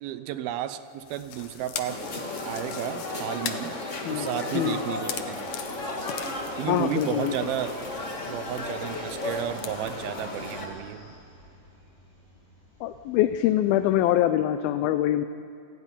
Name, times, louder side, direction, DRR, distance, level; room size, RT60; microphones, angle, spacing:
voice 1, 0.0-2.0 2.5-3.7 4.1-5.5 6.6-7.7 8.2-11.1, right 11 dB, 80° right, 12 dB, 2.6 m, -32 dB
sound 1, 1.0-10.2, left 9 dB, 65° left, 2.1 m, -42 dB
sound 2, 1.0-14.1, equal, 40° right, 9.1 m, -52 dB
sound 3, 1.8-10.7, left 2 dB, 30° left, 1.5 m, -34 dB
voice 2, 6.7-7.3 12.8-15.2, left 13 dB, 80° left, 10 dB, 2.5 m, -24 dB
28.5 x 15.0 x 10.0 m, 2.5 s
omnidirectional pair, 4.3 m